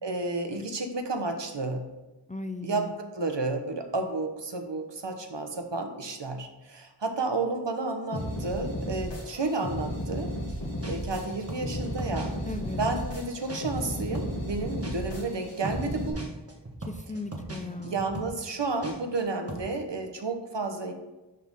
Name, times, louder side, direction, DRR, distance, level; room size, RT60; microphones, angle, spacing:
voice 1, 0.0-1.8 2.6-10.3 10.8-12.3 12.8-16.3 17.8-20.9, right 3 dB, 75° right, 5 dB, 1.0 m, -31 dB
voice 2, 2.3-2.9 12.5-12.8 16.9-18.1, left 2 dB, 20° left, 7 dB, 0.4 m, -37 dB
sound 1, 8.1-16.1, left 1 dB, 75° left, 2.4 m, -34 dB
sound 2, 10.5-10.6 10.8-13.9 14.2-19.2 19.5-19.7, right 1 dB, 35° right, 1.3 m, -40 dB
11.0 x 4.1 x 3.6 m, 1.1 s
wide cardioid pair, 55°, 44 cm